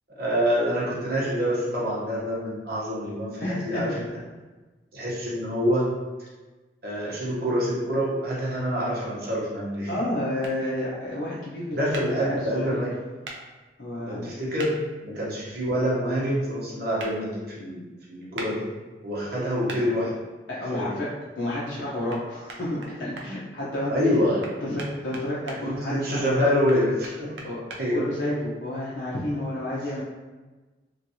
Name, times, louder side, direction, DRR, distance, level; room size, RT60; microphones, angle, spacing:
voice 1, 0.2-4.1 4.9-5.9 6.8-9.9 11.7-12.9 14.0-17.8 18.1-18.7 19.0-20.1 20.7-20.9 23.9-24.5 25.6-27.3 27.8-28.1, equal, 60° right, -5 dB, 0.9 m, -26 dB
voice 2, 3.4-4.0 9.9-12.8 13.8-14.4 20.5-21.1 21.4-23.9 24.6-26.5 27.4-27.6 27.9-30.0, left 1 dB, 80° left, -8 dB, 0.8 m, -30 dB
sound 1, 10.4-10.6 11.9-12.1 13.2-13.4 14.6-14.7 17.0-17.1 18.4-18.5 19.7-19.8 22.1-22.2 22.5-23.3 24.4-25.6 26.7-27.8, right 3 dB, 85° right, 0.5 m, -38 dB
3.1 x 2.5 x 2.8 m, 1.2 s
head